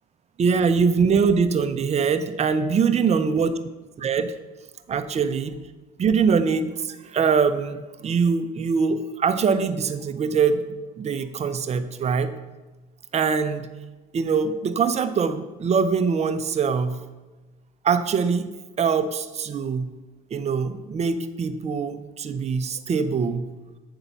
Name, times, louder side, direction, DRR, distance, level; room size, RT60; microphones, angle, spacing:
voice 1, 0.4-3.5 4.0-4.3 4.9-5.6 6.0-10.6 11.0-12.3 13.1-13.7 14.1-17.0 17.8-18.5 18.8-19.9 20.3-23.5, right 5 dB, 35° right, 10 dB, 0.6 m, -23 dB
8.1 x 3.8 x 5.5 m, 1.2 s
supercardioid pair, 90°, 20 cm